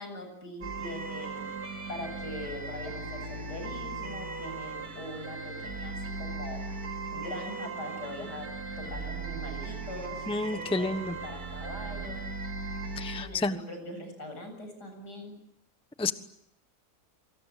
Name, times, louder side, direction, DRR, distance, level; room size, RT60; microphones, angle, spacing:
voice 1, 0.0-1.5 1.9-6.6 7.1-8.5 8.8-10.3 10.5-12.2 13.2-15.3, left 1 dB, 75° left, 5 dB, 8.4 m, -42 dB
sound 1, 0.6-13.3, right 3 dB, 60° right, 3.3 m, -38 dB
voice 2, 10.3-11.1 13.0-13.6 16.0-16.1, left 3 dB, 5° left, 11 dB, 1.0 m, -30 dB
28.0 x 25.5 x 7.5 m, 0.73 s
omnidirectional pair, 1.8 m